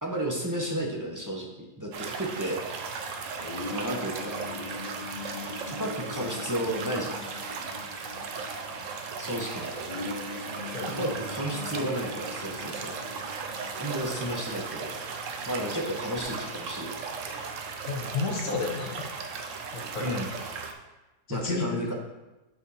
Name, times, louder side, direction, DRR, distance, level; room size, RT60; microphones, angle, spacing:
voice 1, 0.0-1.5 1.8-2.6 3.7-4.4 5.7-7.2 9.2-9.7 10.8-12.9 13.8-14.9 15.5-16.9 20.0-20.3 21.3-21.9, right 1 dB, 15° right, -2 dB, 0.6 m, -32 dB
sound 1, 1.9-20.7, right 5 dB, 60° right, 0.9 m, -37 dB
sound 2, 3.4-14.6, left 3 dB, 30° left, 0.7 m, -42 dB
voice 2, 10.7-11.1 17.9-19.1 19.7-20.1 21.3-21.6, left 4 dB, 55° left, 1 dB, 1.5 m, -31 dB
7.2 x 4.5 x 5.5 m, 1.0 s
omnidirectional pair, 1.8 m